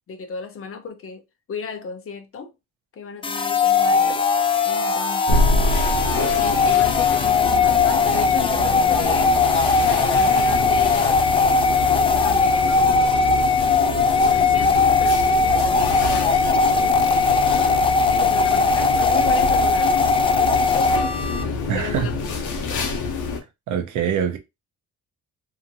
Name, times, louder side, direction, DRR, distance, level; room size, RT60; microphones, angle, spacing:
voice 1, 0.1-1.2 1.5-2.5 2.9-4.3 4.6-9.4 9.8-11.8 12.1-13.6 14.2-16.4 16.7-17.6 18.1-20.0 20.2-22.9, left 6 dB, 50° left, 0.7 m, -35 dB
sound 1, 3.2-21.4, left 4 dB, 20° left, 0.4 m, -19 dB
sound 2, 5.3-23.4, left 3 dB, 85° left, 0.8 m, -26 dB
voice 2, 21.7-22.1 23.7-24.4, right 8 dB, 75° right, 0.7 m, -23 dB
2.9 x 2.6 x 2.6 m
cardioid pair, 90°, 30 cm